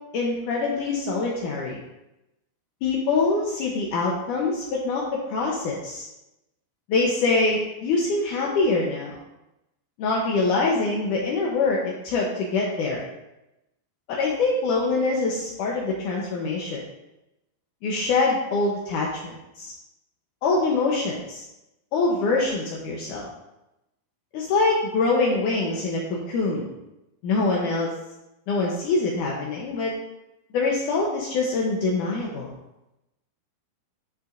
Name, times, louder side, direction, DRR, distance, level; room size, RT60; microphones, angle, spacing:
voice 1, 0.1-1.8 2.8-6.0 6.9-9.2 10.0-13.0 14.1-16.8 17.8-19.7 20.4-21.4 21.9-23.3 24.3-26.7 27.2-27.9 28.5-29.9 30.5-32.5, left 3 dB, 90° left, -2 dB, 1.7 m, -24 dB
11.5 x 6.0 x 2.5 m, 0.93 s
omnidirectional pair, 4.9 m